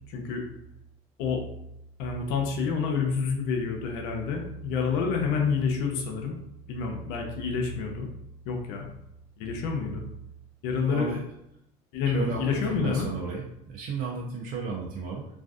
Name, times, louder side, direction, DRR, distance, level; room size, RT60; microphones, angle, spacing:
voice 1, 0.1-0.4 1.2-1.4 2.0-6.4 6.7-8.1 8.5-8.9 9.4-10.0 10.6-11.1 11.9-13.1, left 5 dB, 75° left, 2 dB, 0.6 m, -28 dB
voice 2, 10.8-11.2 12.1-13.4 13.7-15.3, right 4 dB, 55° right, -1 dB, 0.5 m, -33 dB
2.4 x 2.3 x 2.4 m, 0.81 s
supercardioid pair, 80°, 18 cm